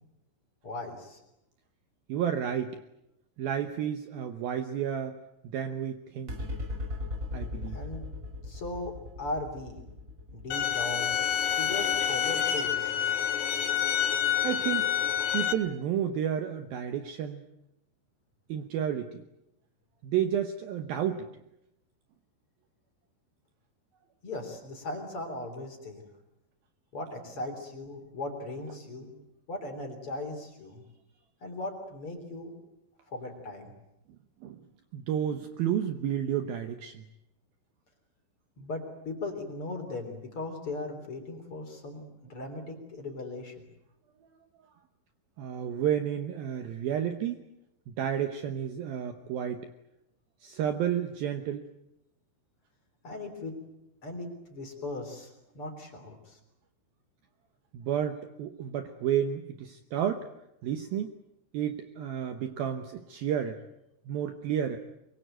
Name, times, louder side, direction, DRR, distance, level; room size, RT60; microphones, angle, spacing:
voice 1, 0.6-1.2 7.7-8.0 8.4-9.8 10.3-11.2 11.6-13.1 24.2-26.0 26.9-29.1 29.5-30.8 31.4-32.5 33.1-33.7 38.6-43.5 53.0-53.6 54.0-56.4, left 2 dB, 30° left, 4 dB, 3.8 m, -38 dB
voice 2, 2.1-2.8 3.4-5.2 5.5-6.3 7.3-7.8 14.4-14.9 15.3-17.4 18.5-19.2 20.0-21.3 34.4-34.6 34.9-37.0 45.4-47.5 47.9-49.7 50.4-51.7 57.7-60.3 60.6-61.1 61.5-63.6 64.1-64.8, right 9 dB, 90° right, 8 dB, 2.0 m, -31 dB
sound 1, 6.3-13.0, left 2 dB, 55° right, 0.9 m, -39 dB
sound 2, 10.5-15.5, left 9 dB, 80° left, 4.2 m, -28 dB
23.5 x 23.5 x 9.2 m, 0.86 s
omnidirectional pair, 5.8 m